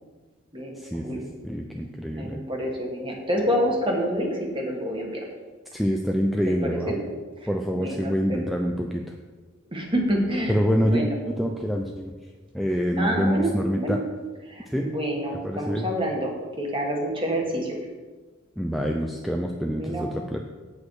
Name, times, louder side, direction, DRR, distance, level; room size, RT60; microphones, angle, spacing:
voice 1, 0.8-2.4 5.7-6.9 7.5-9.2 10.5-12.1 12.5-14.0 14.7-14.9 15.4-15.9 18.6-20.5, equal, ahead, 1 dB, 0.5 m, -26 dB
voice 2, 2.1-5.2 6.6-7.0 7.4-8.5 9.7-11.1 13.0-13.5 13.8-14.0 14.5-17.7 19.8-20.1, equal, 25° right, 0 dB, 1.9 m, -28 dB
8.5 x 8.3 x 4.8 m, 1.4 s
head